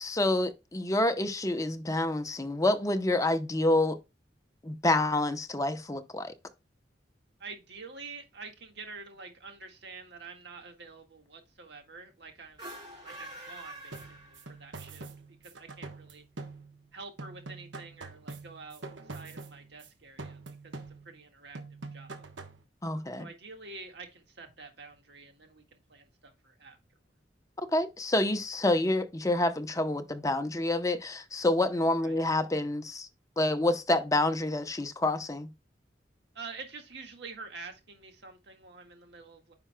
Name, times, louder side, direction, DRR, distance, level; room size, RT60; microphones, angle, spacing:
voice 1, 0.0-4.0 4.6-6.3 22.8-23.3 27.7-33.1 33.4-35.5, left 2 dB, 20° left, 0.8 m, -28 dB
voice 2, 7.4-12.7 13.0-14.0 14.2-15.1 15.4-16.2 16.9-18.8 19.1-21.6 21.9-22.2 23.2-26.8 32.0-32.2 36.4-39.5, right 4 dB, 65° right, 1.8 m, -47 dB
sound 1, 12.5-14.8, right 1 dB, 25° right, 4.6 m, -45 dB
sound 2, 13.9-16.9 17.2-19.9 20.2-21.3 21.5-22.6, right 3 dB, 85° right, 1.2 m, -45 dB
9.7 x 5.6 x 2.2 m
head